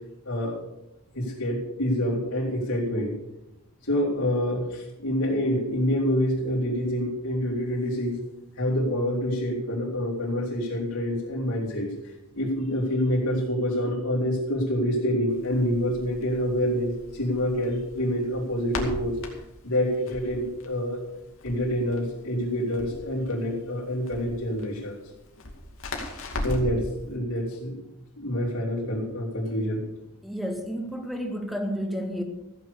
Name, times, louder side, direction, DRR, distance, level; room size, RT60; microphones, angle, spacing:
voice 1, 0.2-0.6 1.1-3.2 3.8-8.2 8.6-11.9 12.3-19.1 19.6-21.0 21.4-25.0 26.4-27.8 28.2-29.8, equal, 80° left, -9 dB, 4.1 m, -27 dB
Crackle, 15.3-26.8, left 1 dB, 60° left, 2.4 m, -38 dB
voice 2, 30.2-32.2, equal, ahead, 4 dB, 1.6 m, -31 dB
15.5 x 7.8 x 7.0 m, 0.93 s
head